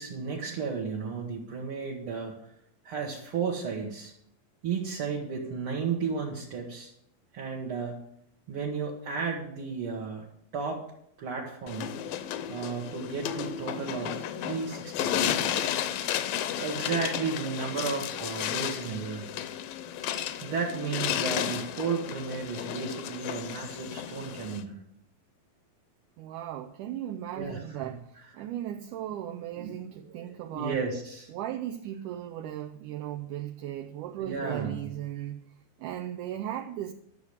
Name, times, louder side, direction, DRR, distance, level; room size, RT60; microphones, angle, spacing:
voice 1, 0.0-2.3 2.8-4.1 4.6-6.9 7.3-8.0 8.5-10.3 10.5-10.8 11.2-11.9 12.5-15.8 16.6-19.3 20.4-24.8 27.3-27.9 29.6-31.3 33.0-33.1 34.2-34.9, right 5 dB, 50° right, -3 dB, 1.9 m, -34 dB
sound 1, 11.7-24.6, left 10 dB, 75° left, 2.3 m, -33 dB
voice 2, 26.2-30.8 31.3-35.4 35.8-36.9, right 12 dB, 75° right, 4 dB, 2.0 m, -37 dB
12.0 x 7.0 x 8.2 m, 0.72 s
omnidirectional pair, 4.2 m